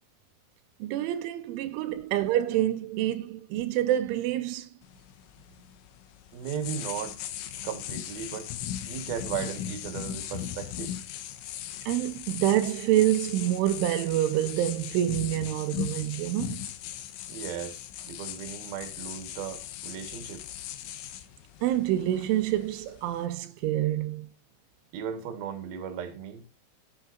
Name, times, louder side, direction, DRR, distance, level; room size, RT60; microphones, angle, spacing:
voice 1, 0.8-4.7 11.9-16.6 21.6-24.3, right 13 dB, 85° right, 3.2 m, -27 dB
voice 2, 1.6-2.0 6.3-7.2 7.6-8.5 8.9-10.9 17.3-20.4 24.9-26.4, right 8 dB, 60° right, 3.1 m, -36 dB
sound 1, 4.8-23.3, left 10 dB, 80° left, 3.4 m, -39 dB
14.0 x 8.9 x 2.6 m
omnidirectional pair, 5.5 m